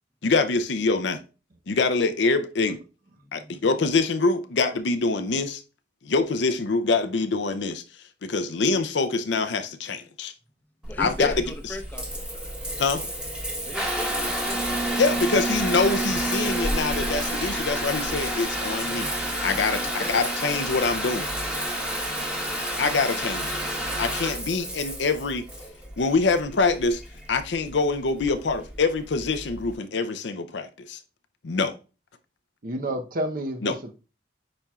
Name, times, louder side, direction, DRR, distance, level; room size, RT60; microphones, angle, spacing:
voice 1, 0.2-1.2 1.7-2.8 3.3-5.6 6.0-7.8 8.2-10.3 11.0-11.3 12.8-13.0 15.0-19.1 19.4-21.3 22.8-23.6 24.0-25.5 26.0-27.0 27.3-31.0 31.4-31.7 33.6-33.8, left 4 dB, 65° left, 0.6 m, -25 dB
voice 2, 3.2-3.7 10.9-12.1 13.6-14.8 19.6-20.3 21.9-22.0, left 1 dB, 10° left, 0.8 m, -37 dB
Water tap faucet / Bathtub (filling or washing) / Trickle dribble, 10.8-29.7, right 1 dB, 5° right, 1.2 m, -30 dB
voice 3, 32.6-33.9, right 1 dB, 50° right, 0.8 m, -30 dB
10.0 x 4.3 x 2.3 m
head